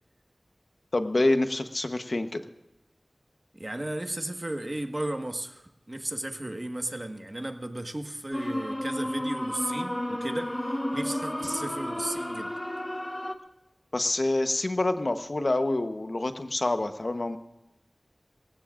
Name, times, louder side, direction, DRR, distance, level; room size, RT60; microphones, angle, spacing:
voice 1, 0.9-2.4 13.9-17.4, left 2 dB, 60° left, 8 dB, 1.0 m, -27 dB
voice 2, 3.5-10.6 10.9-12.5, right 1 dB, 40° right, 5 dB, 1.5 m, -34 dB
sound 1, 8.3-13.4, left 1 dB, 20° left, 1.2 m, -32 dB
25.5 x 14.5 x 2.5 m, 0.96 s
wide cardioid pair, 40°, 0 cm